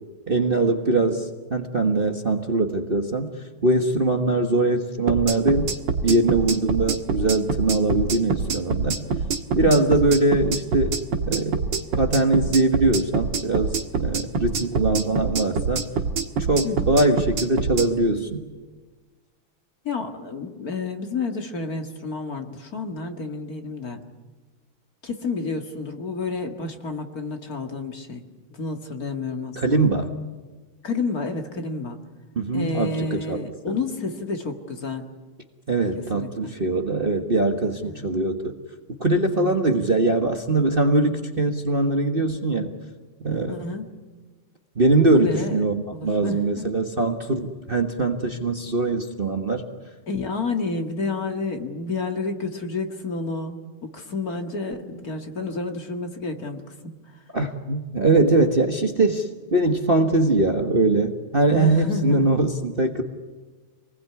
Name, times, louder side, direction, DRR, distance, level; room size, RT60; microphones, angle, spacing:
voice 1, 0.3-1.2 1.5-3.3 3.6-5.7 6.0-9.0 9.5-11.0 11.3-11.6 12.0-13.7 14.0-15.8 16.5-18.4 29.6-30.1 32.3-33.4 35.7-38.5 39.0-42.7 43.2-43.6 44.8-49.6 57.3-63.0, right 2 dB, 30° right, 5 dB, 1.5 m, -22 dB
sound 1, 5.1-17.9, right 4 dB, 60° right, 2.3 m, -25 dB
voice 2, 19.8-24.0 25.0-28.2 28.5-29.8 30.8-32.0 32.5-35.1 36.1-36.5 37.8-38.1 39.3-39.6 43.5-43.9 45.2-45.6 45.9-46.7 50.1-57.2 61.5-62.3, left 3 dB, 45° left, 5 dB, 2.3 m, -30 dB
27.5 x 20.5 x 9.7 m, 1.3 s
omnidirectional pair, 2.3 m